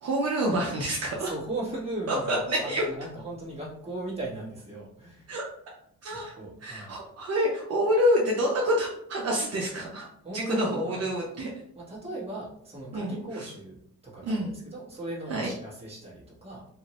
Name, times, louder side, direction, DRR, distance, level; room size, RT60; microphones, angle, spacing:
voice 1, 0.0-1.3 2.1-2.8 5.3-5.4 6.0-6.3 6.6-10.0 10.3-11.5 12.9-13.5 14.2-14.6 15.3-15.5, equal, 55° right, -2 dB, 0.7 m, -27 dB
voice 2, 1.2-5.3 6.1-7.0 10.2-11.1 11.7-16.7, right 1 dB, 20° right, -6 dB, 1.3 m, -37 dB
2.7 x 2.5 x 3.0 m, 0.69 s
cardioid pair, 90°, 30 cm